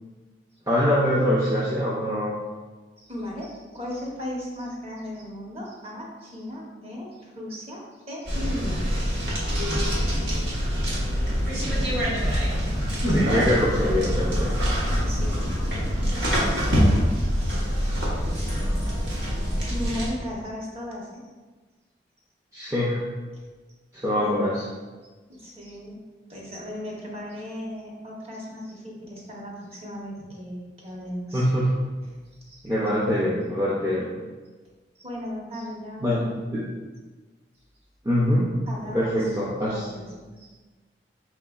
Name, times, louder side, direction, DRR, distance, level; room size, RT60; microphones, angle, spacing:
voice 1, 0.7-2.3 11.3-11.4 11.7-12.0 13.1-14.5 22.5-23.0 23.9-24.7 31.3-31.8 32.6-34.1 36.0-36.2 36.5-36.6 38.0-38.5 38.9-39.9, equal, 15° right, -7 dB, 0.4 m, -24 dB
voice 2, 3.0-8.8 15.1-15.4 16.1-16.6 19.7-21.2 24.1-24.3 25.3-26.0 26.3-31.5 32.5-32.6 33.0-33.1 35.0-36.1 36.4-36.5 38.7-39.3 39.6-40.5, left 1 dB, 35° right, -4 dB, 0.8 m, -36 dB
sound 1, 8.3-20.1, equal, 90° right, 1.1 m, -24 dB
4.7 x 3.5 x 2.3 m, 1.3 s
head